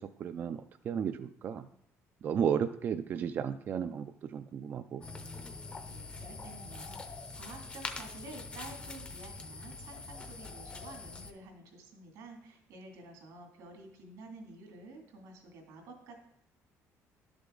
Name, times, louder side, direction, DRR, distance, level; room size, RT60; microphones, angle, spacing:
voice 1, 0.2-1.7 2.2-5.1, right 8 dB, 35° right, 9 dB, 0.3 m, -34 dB
sound 1, 5.0-11.3, left 3 dB, 20° left, 0.6 m, -44 dB
voice 2, 5.8-16.2, right 2 dB, 90° right, 2 dB, 2.6 m, -50 dB
11.5 x 6.9 x 3.8 m, 0.73 s
cardioid pair, 175°, 6 cm